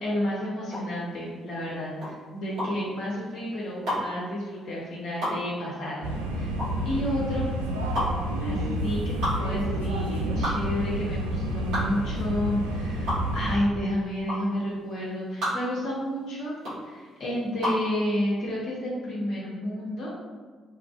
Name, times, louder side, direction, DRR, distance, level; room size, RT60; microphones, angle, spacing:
voice 1, 0.0-6.5 6.8-7.6 8.4-20.1, left 1 dB, 50° left, -6 dB, 0.7 m, -31 dB
sound 1, 0.7-17.9, equal, 60° right, 1.4 m, -32 dB
sound 2, 6.0-13.5, right 1 dB, 80° right, 0.3 m, -29 dB
3.0 x 2.4 x 2.3 m, 1.5 s
figure-of-eight pair, 45°, 0 cm